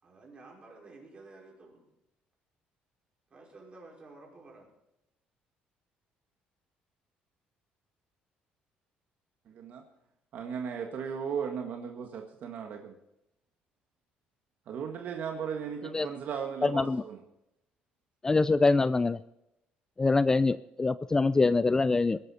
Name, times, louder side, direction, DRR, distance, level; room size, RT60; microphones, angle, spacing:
voice 1, 0.0-1.9 3.3-4.7, right 3 dB, 35° right, -1 dB, 5.3 m, -52 dB
voice 2, 9.5-9.8 10.3-13.0 14.7-17.2, right 7 dB, 60° right, 4 dB, 1.6 m, -36 dB
voice 3, 16.6-17.0 18.2-19.2 20.0-22.2, left 3 dB, 20° left, 15 dB, 0.4 m, -24 dB
21.0 x 11.5 x 4.2 m, 0.85 s
cardioid pair, 115°, 3 cm